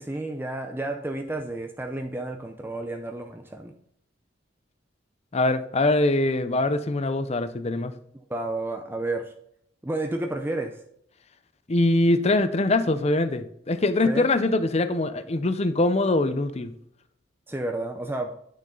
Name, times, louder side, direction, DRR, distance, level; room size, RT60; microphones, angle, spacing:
voice 1, 0.0-3.7 8.3-9.3 9.8-10.8 14.0-14.3 17.5-18.4, right 2 dB, 10° right, 4 dB, 0.6 m, -31 dB
voice 2, 5.3-7.9 11.7-16.7, left 2 dB, 35° left, 12 dB, 0.6 m, -23 dB
9.2 x 6.3 x 3.9 m, 0.72 s
head